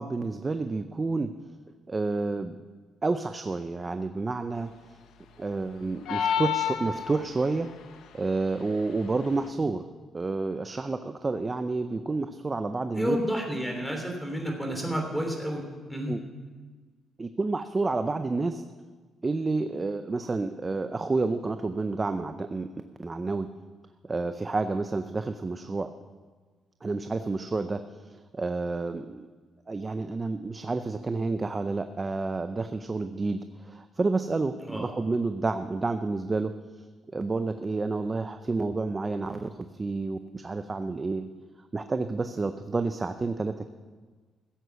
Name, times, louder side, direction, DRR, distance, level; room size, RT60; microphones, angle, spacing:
voice 1, 0.0-1.3 1.9-2.6 3.0-4.7 5.4-7.7 8.1-9.8 10.1-13.2 16.1-16.2 17.2-18.6 19.2-22.7 23.0-23.5 24.0-25.9 26.8-27.8 28.1-29.3 29.7-36.5 37.1-41.3 41.7-43.7, right 3 dB, 25° right, 9 dB, 0.6 m, -29 dB
sound 1, 6.1-7.5, left 8 dB, 85° left, 1.0 m, -28 dB
voice 2, 12.9-15.6 15.9-16.2 34.7-34.9, equal, ahead, 2 dB, 3.2 m, -30 dB
15.5 x 7.9 x 6.9 m, 1.4 s
cardioid pair, 95°, 0 cm